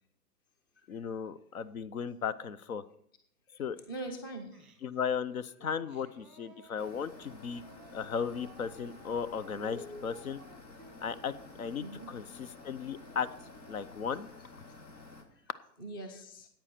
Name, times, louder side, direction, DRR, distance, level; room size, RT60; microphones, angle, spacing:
voice 1, 0.9-2.8 3.6-3.8 4.8-7.6 7.9-10.4 11.0-13.3 13.7-14.3, left 7 dB, 55° left, 15 dB, 0.8 m, -36 dB
voice 2, 3.9-4.5 9.6-10.1 11.8-12.1 15.8-16.5, right 1 dB, 15° left, 5 dB, 0.6 m, -42 dB
Singing, 4.5-5.1 5.6-13.9, right 3 dB, ahead, 1.0 m, -58 dB
sound 1, 6.8-15.2, left 3 dB, 85° left, 2.8 m, -52 dB
14.0 x 9.0 x 4.4 m, 0.68 s
hypercardioid pair, 150°, 49 cm